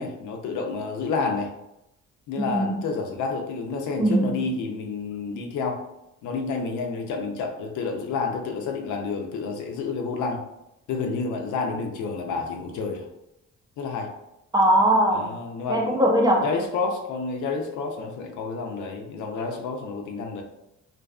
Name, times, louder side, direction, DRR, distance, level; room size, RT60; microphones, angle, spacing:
voice 1, 0.0-1.5 2.3-5.8 6.2-10.4 10.9-13.1 13.8-14.1 15.1-16.0 16.4-20.4, left 4 dB, 75° left, 3 dB, 0.5 m, -29 dB
voice 2, 2.4-2.8 4.0-4.4 14.5-15.3 15.7-16.5, right 1 dB, 15° right, -1 dB, 0.5 m, -20 dB
2.5 x 2.3 x 2.3 m, 0.86 s
cardioid pair, 90°, 30 cm